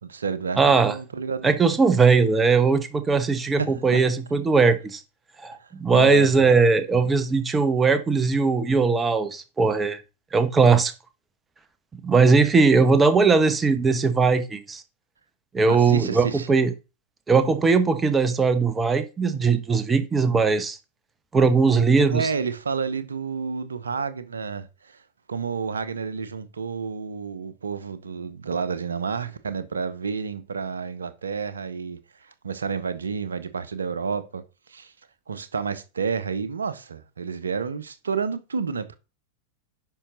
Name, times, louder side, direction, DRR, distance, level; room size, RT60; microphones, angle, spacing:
voice 1, 0.0-1.5 3.6-4.0 5.6-6.3 15.7-16.5 22.1-25.0 25.3-34.4 34.7-34.9 35.3-39.0, right 5 dB, 70° right, 0.9 m, -30 dB
voice 2, 0.6-0.9 1.4-5.0 5.4-10.0 10.3-10.9 12.0-14.8 15.5-16.7 17.3-20.8 21.3-22.3, right 4 dB, 15° right, 1.1 m, -19 dB
10.0 x 5.6 x 3.9 m
figure-of-eight pair, 90°, 0 cm